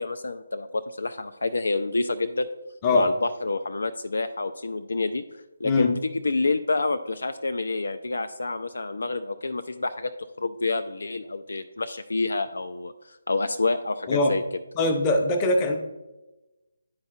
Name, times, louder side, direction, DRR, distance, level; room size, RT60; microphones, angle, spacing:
voice 1, 0.0-2.5 2.9-5.2 5.6-10.1 10.4-14.4, left 3 dB, 65° left, 9 dB, 0.3 m, -28 dB
voice 2, 14.8-15.8, left 2 dB, 20° left, 4 dB, 0.6 m, -22 dB
10.5 x 4.2 x 2.5 m, 1.1 s
figure-of-eight pair, 145°, 0 cm